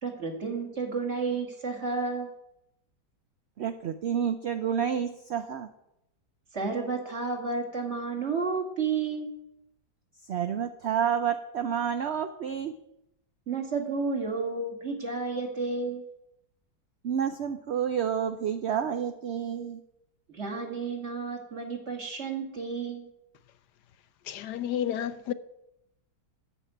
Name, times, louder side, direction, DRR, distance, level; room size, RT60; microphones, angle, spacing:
voice 1, 0.0-2.3 6.5-9.3 13.5-16.1 20.3-23.1, right 4 dB, 40° right, 2.5 m, -31 dB
voice 2, 3.6-5.7 10.3-12.8 17.0-19.8, right 8 dB, 65° right, 0.6 m, -29 dB
voice 3, 24.2-25.3, left 10 dB, 75° left, 1.3 m, -31 dB
9.8 x 7.2 x 9.3 m
omnidirectional pair, 1.8 m